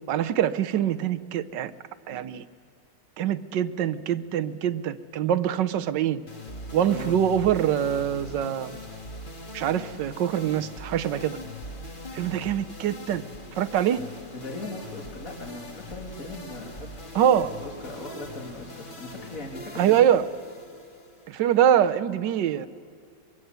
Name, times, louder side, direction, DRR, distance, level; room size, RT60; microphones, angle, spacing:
voice 1, 0.1-1.7 2.1-2.4 3.2-6.2 6.7-8.8 9.5-11.4 12.1-13.2 13.6-14.0 17.1-17.5 19.8-20.2 21.3-22.7, right 10 dB, 85° right, 12 dB, 1.5 m, -24 dB
sound 1, 6.3-21.7, left 1 dB, 30° left, 1.8 m, -41 dB
voice 2, 6.8-7.2 14.3-16.9 17.3-20.0, left 2 dB, 50° left, -1 dB, 3.0 m, -39 dB
23.5 x 22.5 x 8.0 m, 2.2 s
omnidirectional pair, 1.9 m